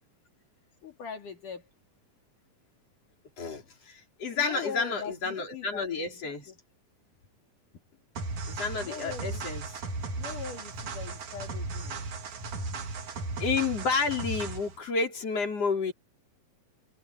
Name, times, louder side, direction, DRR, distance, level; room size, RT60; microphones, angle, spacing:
voice 1, 0.8-1.7 4.3-6.6 8.8-9.4 10.2-12.1, left 6 dB, 65° left, 4.5 m, -41 dB
voice 2, 3.4-6.5 8.5-9.6 13.4-15.9, left 4 dB, 45° left, 5.8 m, -30 dB
sound 1, 8.2-14.8, right 3 dB, 60° right, 3.8 m, -36 dB
omnidirectional pair, 4.0 m